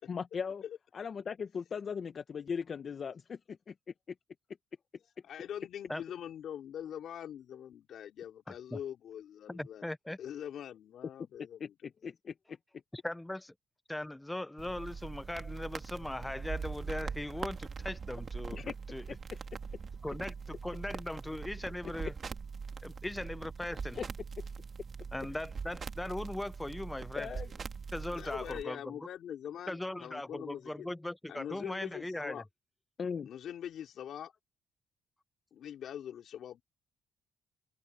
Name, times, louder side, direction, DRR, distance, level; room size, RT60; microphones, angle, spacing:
voice 1, 0.0-0.6 0.9-3.7 11.4-12.6 18.5-18.7 19.3-19.4 24.0-24.1 27.2-27.5 33.0-33.3, left 6 dB, 45° left, 1.0 m, -38 dB
voice 2, 5.2-9.8 10.2-11.7 28.1-30.9 31.3-32.4 33.3-34.3 35.5-36.6, left 9 dB, 70° left, 3.2 m, -43 dB
voice 3, 8.5-8.8 9.5-10.2 12.9-13.5 13.9-18.6 18.9-19.0 20.0-22.1 22.8-24.0 25.1-27.3 27.9-28.9 29.7-32.4, left 1 dB, 10° left, 0.5 m, -39 dB
sound 1, 14.6-28.6, right 5 dB, 45° right, 2.1 m, -42 dB
cardioid pair, 90°, 0 cm